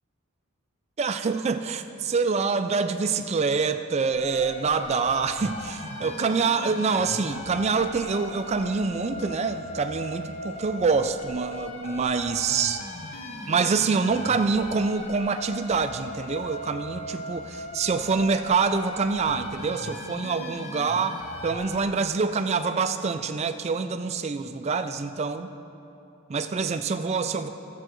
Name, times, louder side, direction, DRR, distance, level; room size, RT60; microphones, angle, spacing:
voice 1, 1.0-12.8 13.4-25.5 26.3-27.5, right 4 dB, 30° right, 9 dB, 0.3 m, -26 dB
sound 1, 4.1-21.8, left 2 dB, 35° left, 0.6 m, -38 dB
16.0 x 7.6 x 3.1 m, 2.8 s
head